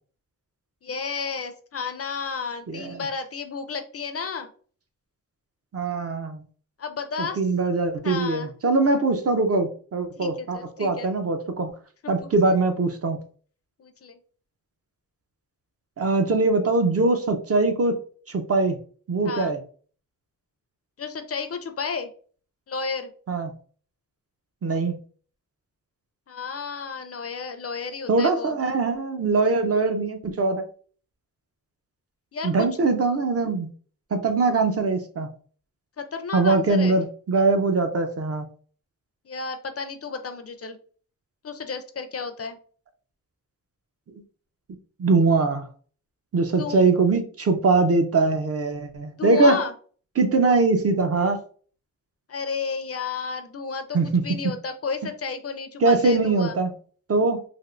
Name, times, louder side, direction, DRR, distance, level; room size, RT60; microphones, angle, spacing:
voice 1, 0.8-4.5 6.8-7.4 8.0-8.5 10.2-10.3 10.5-11.1 12.0-12.1 13.8-14.2 19.2-19.5 21.0-22.1 22.7-23.1 26.3-28.6 32.3-32.7 36.0-37.0 39.3-40.8 41.4-42.6 46.6-46.8 49.2-49.7 52.3-56.6, left 5 dB, 45° left, 8 dB, 0.4 m, -32 dB
voice 2, 2.7-3.0 5.7-6.4 7.4-11.7 12.1-13.2 16.0-18.0 18.3-18.8 19.1-19.6 23.3-23.5 24.6-25.0 28.1-30.7 32.4-33.7 34.1-35.3 36.3-38.5 45.0-45.7 46.3-49.6 50.2-51.4 53.9-54.4 55.8-56.7 57.1-57.4, right 3 dB, 45° right, 6 dB, 0.5 m, -22 dB
3.4 x 2.4 x 2.4 m, 0.43 s
wide cardioid pair, 110°, 33 cm